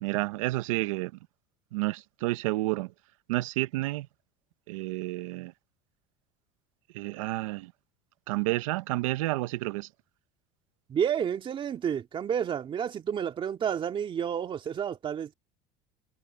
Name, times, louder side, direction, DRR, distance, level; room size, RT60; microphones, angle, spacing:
voice 1, 0.0-1.1 1.7-2.9 3.3-4.1 4.7-5.5 6.9-7.7 8.3-9.9, right 20 dB, 90° right, 0.7 m, -30 dB
voice 2, 10.9-15.3, right 8 dB, 30° right, 2.3 m, -30 dB
supercardioid pair, 125°, 16 cm